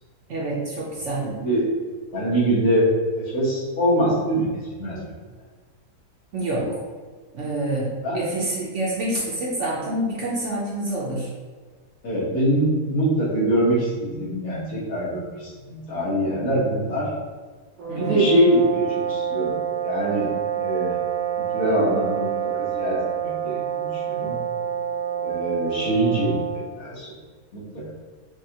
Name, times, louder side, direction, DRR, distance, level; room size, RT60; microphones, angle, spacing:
voice 1, 0.3-1.3 6.3-6.8 7.3-11.3 17.9-18.2, right 1 dB, 60° right, -5 dB, 0.9 m, -27 dB
voice 2, 1.2-1.7 2.1-5.0 8.0-8.3 12.0-17.1 17.9-19.5 19.8-20.3 20.5-20.9 21.5-24.4 25.2-26.4 26.7-27.1 27.5-27.8, right 1 dB, 60° left, -7 dB, 1.5 m, -23 dB
sound 1, 17.8-26.7, right 9 dB, 80° right, 1.4 m, -27 dB
4.7 x 2.4 x 2.8 m, 1.4 s
omnidirectional pair, 1.7 m